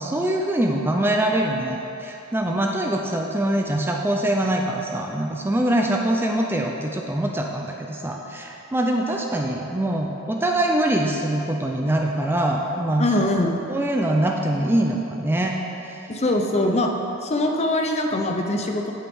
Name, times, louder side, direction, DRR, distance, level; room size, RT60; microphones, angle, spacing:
voice 1, 0.0-13.1 13.7-16.0, right 1 dB, 10° right, 1 dB, 0.4 m, -23 dB
voice 2, 13.0-13.6 16.1-16.9 17.2-18.9, left 1 dB, 30° left, 3 dB, 0.6 m, -22 dB
8.6 x 8.4 x 3.6 m, 2.9 s
head